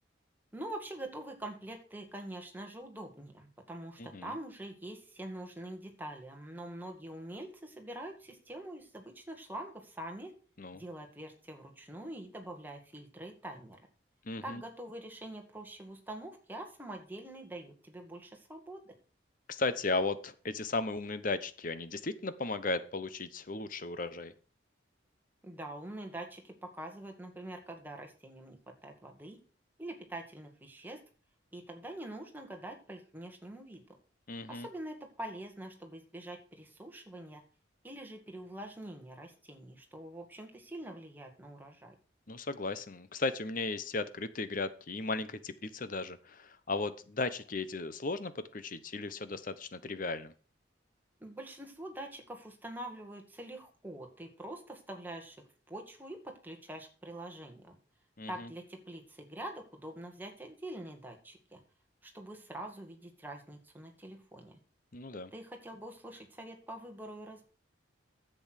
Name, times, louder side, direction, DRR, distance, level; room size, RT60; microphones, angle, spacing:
voice 1, 0.5-10.3 10.7-13.8 14.4-18.9 25.4-28.6 28.8-29.4 29.8-31.0 31.5-33.8 34.5-37.4 37.8-41.9 51.2-55.4 55.7-57.8 58.3-61.6 62.0-64.6 65.3-67.4, right 1 dB, 10° right, 3 dB, 2.0 m, -45 dB
voice 2, 4.0-4.3 10.6-10.8 14.2-14.6 19.5-24.3 34.3-34.7 42.3-50.3 58.2-58.5 64.9-65.3, left 3 dB, 45° left, 13 dB, 0.9 m, -36 dB
10.5 x 7.9 x 6.5 m, 0.39 s
head